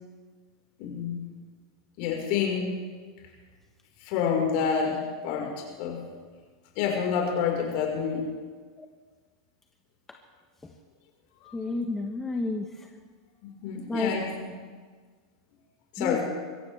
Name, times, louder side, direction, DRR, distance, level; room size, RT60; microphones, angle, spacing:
voice 1, 0.8-1.2 2.0-2.7 4.0-5.5 5.8-6.0 6.8-8.2 11.4-11.5 13.4-14.5 15.9-16.2, left 7 dB, 55° left, 0 dB, 5.1 m, -28 dB
voice 2, 11.5-12.7 13.9-14.3 16.0-16.2, left 3 dB, 15° left, 3 dB, 1.4 m, -30 dB
23.0 x 16.5 x 3.6 m, 1.5 s
hypercardioid pair, 95°, 2 cm